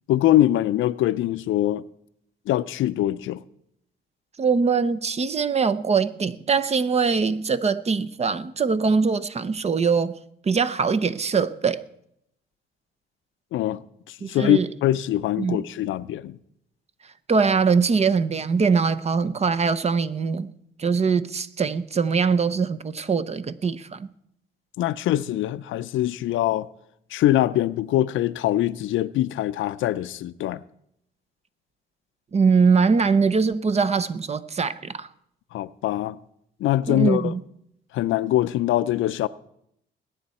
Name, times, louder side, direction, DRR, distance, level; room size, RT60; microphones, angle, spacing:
voice 1, 0.1-1.8 2.5-3.4 13.5-13.8 14.1-16.4 24.8-26.7 27.1-30.6 35.5-36.2 36.6-37.3 37.9-39.3, left 13 dB, 80° left, 0.5 m, -23 dB
voice 2, 4.4-10.1 10.4-11.8 14.2-14.7 15.4-15.7 17.3-20.5 20.8-24.1 32.3-35.1 36.9-37.4, right 5 dB, 35° right, 0.7 m, -22 dB
21.0 x 9.1 x 4.3 m
cardioid pair, 90°, 20 cm